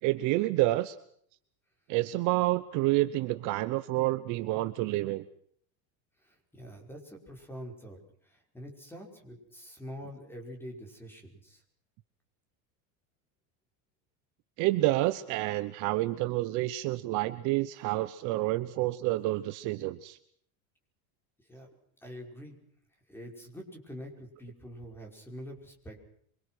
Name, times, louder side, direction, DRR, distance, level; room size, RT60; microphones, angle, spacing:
voice 1, 0.0-1.0 1.9-5.2 14.6-20.2, right 18 dB, 40° right, 13 dB, 1.0 m, -28 dB
voice 2, 6.2-11.6 21.4-21.7 22.0-22.6 23.1-26.0, equal, 5° left, 2 dB, 5.4 m, -45 dB
27.5 x 24.5 x 6.2 m, 0.64 s
cardioid pair, 170°, 45 cm